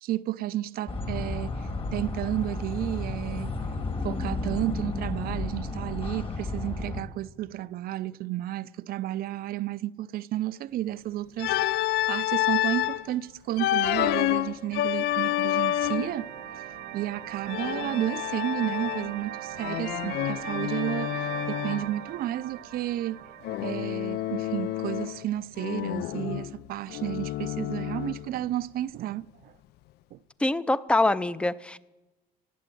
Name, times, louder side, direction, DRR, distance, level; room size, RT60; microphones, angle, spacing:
voice 1, 0.0-3.6 4.0-16.3 16.9-23.2 23.6-29.5 30.1-30.2, right 14 dB, 65° right, 0.4 m, -32 dB
sound 1, 0.9-7.0, left 3 dB, 35° left, 1.8 m, -32 dB
Organ, 11.4-13.0 13.6-16.2 17.5-19.2 19.6-21.9 23.4-25.3 25.6-28.3, left 14 dB, 75° left, 0.4 m, -29 dB
sound 2, 14.2-25.2, right 11 dB, 80° right, 0.8 m, -41 dB
voice 2, 30.4-31.8, left 2 dB, 5° left, 0.4 m, -24 dB
17.0 x 8.5 x 7.7 m
cardioid pair, 110°, 17 cm